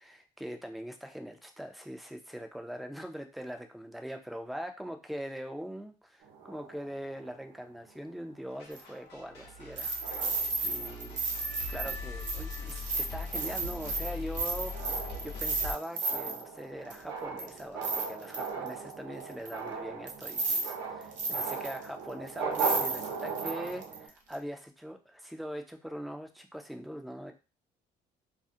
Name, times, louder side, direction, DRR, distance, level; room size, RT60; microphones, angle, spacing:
voice 1, 0.0-9.9 10.6-11.2 11.7-27.3, equal, ahead, 5 dB, 0.3 m, -42 dB
sound 1, 6.2-8.1 8.7-8.9 9.3-9.6 10.0-11.3 11.8-12.1 12.5-24.1, right 5 dB, 90° right, 0.8 m, -39 dB
sound 2, 8.5-15.7, left 3 dB, 85° left, 0.9 m, -41 dB
sound 3, 8.7-8.8 9.8-16.4 16.9-17.0 17.4-18.7 19.5-19.6 20.1-20.7 21.0-21.9 22.3-22.4 22.5-24.0 24.3-24.4, right 3 dB, 50° right, 0.6 m, -33 dB
2.4 x 2.0 x 2.6 m, 0.32 s
cardioid pair, 110°, 17 cm